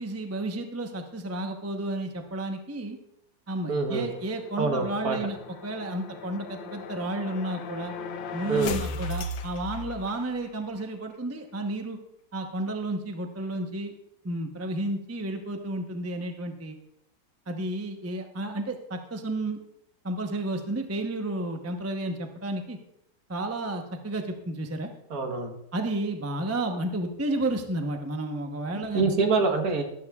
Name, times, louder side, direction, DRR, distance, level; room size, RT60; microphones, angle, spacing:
voice 1, 0.0-3.0 3.5-5.4 5.6-7.9 8.3-12.0 12.3-13.9 14.2-16.8 17.5-19.6 20.0-22.8 23.3-24.9 25.7-29.0, right 1 dB, 20° right, 4 dB, 0.4 m, -32 dB
voice 2, 3.7-4.1 4.6-5.2 8.5-8.8 25.1-25.5 28.9-29.8, right 4 dB, 55° right, 4 dB, 1.6 m, -25 dB
sound 1, 3.8-10.5, left 4 dB, 90° left, 1.5 m, -38 dB
13.5 x 12.0 x 2.4 m, 0.79 s
omnidirectional pair, 2.0 m